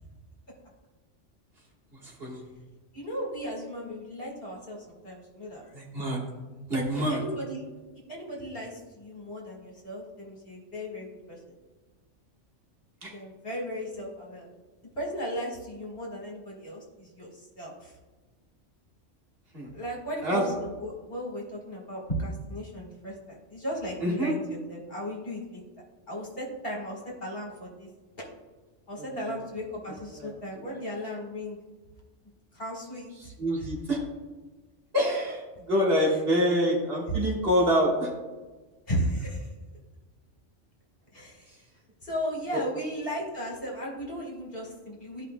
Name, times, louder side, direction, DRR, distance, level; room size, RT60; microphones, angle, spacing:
voice 1, 2.0-2.4 5.7-6.2 6.7-7.2 13.0-13.1 19.5-19.7 20.2-20.4 24.0-24.3 29.2-29.3 30.2-30.3 30.6-30.8 33.2-34.0 34.9-38.1 42.5-42.6, equal, 55° right, -3 dB, 1.8 m, -26 dB
voice 2, 2.9-5.8 6.9-7.6 8.1-11.5 13.1-14.5 14.9-17.9 19.7-25.6 26.1-27.9 28.2-28.3 28.9-31.6 32.5-33.3 33.6-33.7 38.9-39.5 41.1-41.5 42.0-45.2, equal, 50° left, -3 dB, 2.0 m, -36 dB
14.0 x 5.1 x 2.2 m, 1.3 s
omnidirectional pair, 1.3 m